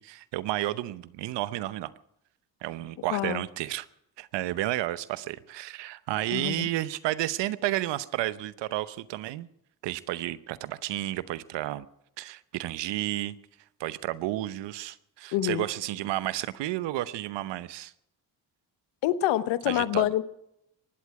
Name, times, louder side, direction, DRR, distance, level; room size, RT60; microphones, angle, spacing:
voice 1, 0.0-1.9 2.6-3.9 4.2-9.5 9.8-11.9 12.2-13.3 13.8-17.9 19.7-20.1, right 15 dB, 80° right, 16 dB, 0.9 m, -31 dB
voice 2, 3.1-3.4 6.3-6.7 15.3-15.7 19.0-20.2, left 13 dB, 85° left, 14 dB, 1.0 m, -26 dB
24.0 x 11.0 x 4.8 m, 0.78 s
supercardioid pair, 50°, 42 cm